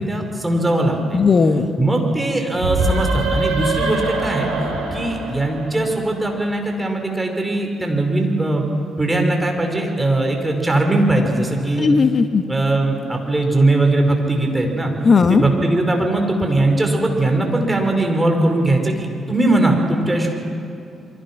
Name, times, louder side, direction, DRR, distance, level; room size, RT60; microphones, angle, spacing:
voice 1, 0.0-1.2 1.8-4.5 4.9-8.7 9.0-11.9 12.5-14.9 15.3-20.3, right 2 dB, 15° right, 2 dB, 5.2 m, -20 dB
voice 2, 1.1-1.7 11.8-12.4 15.0-15.4, left 5 dB, 40° left, 9 dB, 1.7 m, -15 dB
sound 1, 2.6-6.2, right 2 dB, 75° right, 4.0 m, -23 dB
28.0 x 23.0 x 6.2 m, 2.6 s
figure-of-eight pair, 40°, 0 cm